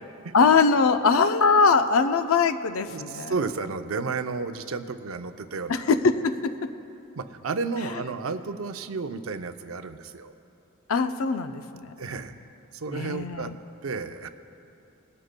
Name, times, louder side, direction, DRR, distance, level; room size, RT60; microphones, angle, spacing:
voice 1, 0.3-3.3 5.7-6.7 10.9-11.9 12.9-13.6, left 4 dB, 70° left, 9 dB, 0.5 m, -22 dB
voice 2, 2.9-5.9 7.2-10.3 12.0-12.3 12.7-13.5 13.8-14.3, right 4 dB, 70° right, 9 dB, 0.6 m, -32 dB
20.0 x 12.5 x 2.2 m, 2.9 s
head